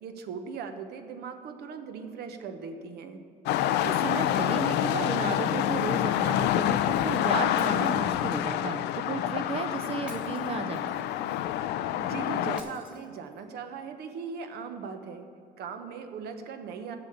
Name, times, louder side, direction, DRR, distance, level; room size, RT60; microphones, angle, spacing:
voice 1, 0.0-3.2 12.0-15.3 15.6-17.0, right 6 dB, 70° right, 7 dB, 1.0 m, -39 dB
sound 1, 3.5-12.6, left 11 dB, 85° left, 0.5 m, -27 dB
voice 2, 3.8-10.9, right 5 dB, 35° right, 7 dB, 0.5 m, -34 dB
Shatter, 7.6-8.5 10.1-11.2 12.6-13.6, right 1 dB, 5° right, 1.4 m, -50 dB
7.2 x 6.8 x 7.9 m, 2.4 s
cardioid pair, 110°, 17 cm